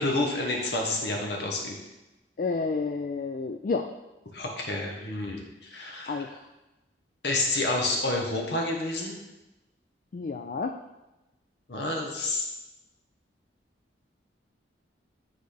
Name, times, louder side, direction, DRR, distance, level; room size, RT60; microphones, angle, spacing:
voice 1, 0.0-1.8 4.3-6.3 7.2-9.1 11.7-12.5, left 2 dB, 70° left, 0 dB, 1.1 m, -29 dB
voice 2, 2.4-3.9 6.1-6.4 10.1-10.8, left 4 dB, 45° left, 5 dB, 0.3 m, -30 dB
10.5 x 3.9 x 3.3 m, 1.0 s
head